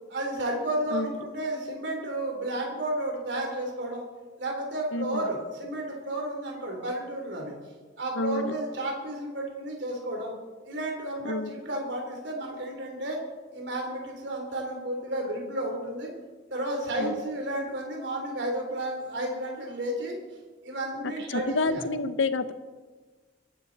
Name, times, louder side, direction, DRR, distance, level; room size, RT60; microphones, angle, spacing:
voice 1, 0.1-4.1 4.4-7.5 8.0-10.3 10.6-13.2 13.5-16.1 16.5-20.2 20.6-21.8, right 1 dB, 65° right, 1 dB, 3.6 m, -32 dB
voice 2, 4.9-5.2 8.2-8.6 11.2-11.5 17.0-17.1 21.0-22.5, left 2 dB, 85° left, 11 dB, 0.9 m, -29 dB
23.5 x 12.5 x 4.2 m, 1.4 s
head